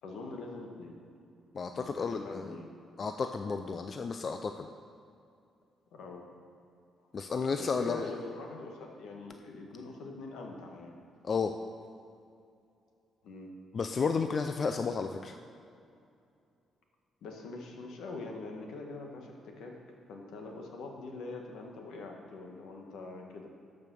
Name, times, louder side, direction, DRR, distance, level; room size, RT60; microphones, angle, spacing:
voice 1, 0.0-0.9 1.7-2.7 5.9-6.3 7.6-10.9 13.2-13.5 17.2-19.7 20.1-23.5, left 3 dB, 80° left, 1 dB, 1.6 m, -43 dB
voice 2, 1.5-2.6 3.0-4.7 7.1-8.0 11.2-11.5 13.7-15.4, left 5 dB, 45° left, 7 dB, 0.5 m, -32 dB
12.5 x 5.3 x 6.2 m, 2.5 s
cardioid pair, 90°, 0 cm